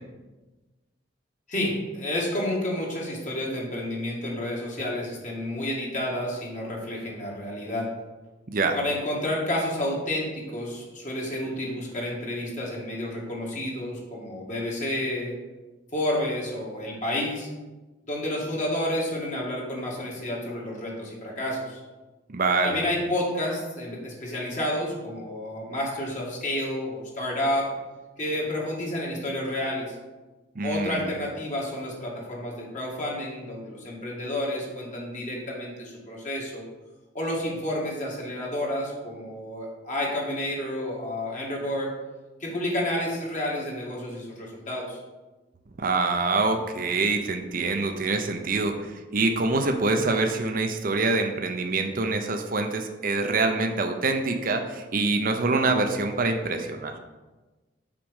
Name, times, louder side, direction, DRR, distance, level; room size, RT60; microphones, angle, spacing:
voice 1, 1.5-7.9 8.7-15.3 15.9-17.5 18.1-21.8 22.6-27.7 28.2-29.9 30.6-36.6 37.1-41.9 42.4-45.0, left 1 dB, 40° left, -3 dB, 2.1 m, -30 dB
voice 2, 22.3-22.8 30.6-31.0 45.8-56.9, right 3 dB, 50° right, 5 dB, 0.7 m, -25 dB
6.1 x 5.1 x 6.4 m, 1.2 s
head